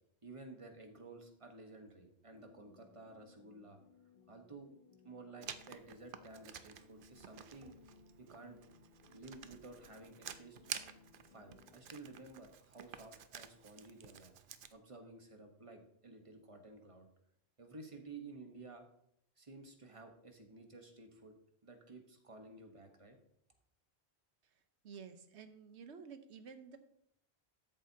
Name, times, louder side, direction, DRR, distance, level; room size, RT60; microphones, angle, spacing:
voice 1, 0.2-3.8 4.3-4.7 5.0-7.8 8.2-8.6 9.1-10.6 11.3-14.3 14.7-17.1 17.6-18.9 19.4-21.3 21.6-23.2, right 3 dB, 30° right, 4 dB, 1.2 m, -53 dB
sound 1, 2.3-11.8, left 4 dB, 65° left, 1.1 m, -64 dB
Writing, 5.4-14.7, right 8 dB, 60° right, 0.7 m, -51 dB
voice 2, 24.8-26.8, right 6 dB, 90° right, 9 dB, 1.2 m, -52 dB
13.0 x 7.4 x 2.8 m, 0.73 s
omnidirectional pair, 1.1 m